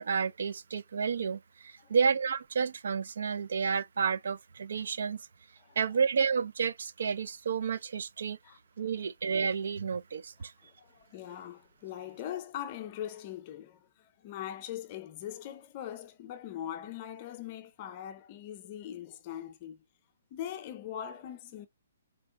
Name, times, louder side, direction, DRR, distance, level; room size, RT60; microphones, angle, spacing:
voice 1, 0.0-5.2 5.8-8.4 8.8-10.5, right 6 dB, 70° right, 0.5 m, -30 dB
voice 2, 10.4-19.8 20.3-21.7, left 10 dB, 35° left, 0.6 m, -41 dB
4.5 x 2.1 x 3.7 m
hypercardioid pair, 150°, 0 cm